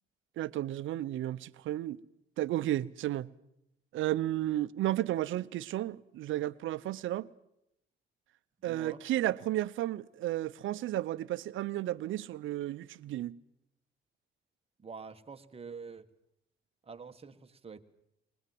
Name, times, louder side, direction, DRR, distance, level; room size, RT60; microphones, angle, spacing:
voice 1, 0.4-2.0 2.4-3.3 3.9-7.3 8.6-13.4, right 14 dB, 80° right, 0.7 m, -33 dB
voice 2, 8.6-9.0 14.8-16.1 16.8-17.8, right 5 dB, 30° right, 1.5 m, -46 dB
21.0 x 20.0 x 7.7 m
cardioid pair, 90°, 20 cm